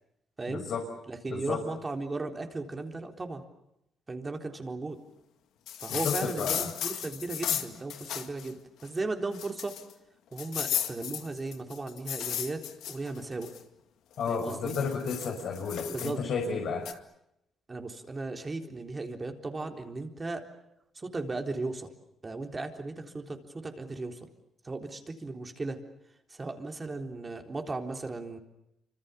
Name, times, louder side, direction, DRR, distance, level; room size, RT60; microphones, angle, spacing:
voice 1, 0.5-0.8 1.3-1.6 6.0-6.7 14.2-16.8, left 5 dB, 70° left, 0 dB, 5.9 m, -32 dB
voice 2, 1.1-3.4 4.1-5.0 5.8-9.7 10.3-13.5 14.3-14.7 15.9-16.2 16.5-16.6 17.7-20.4 20.9-21.9 22.2-24.3 24.6-25.8 26.3-28.4, right 3 dB, 25° right, 4 dB, 3.8 m, -36 dB
sound 1, 5.7-8.5 8.8-8.9 9.3-9.9 10.4-13.6 14.2-16.1 16.8-16.9, left 11 dB, 85° left, 2.1 m, -35 dB
28.5 x 26.0 x 7.0 m, 0.83 s
cardioid pair, 100°, 0 cm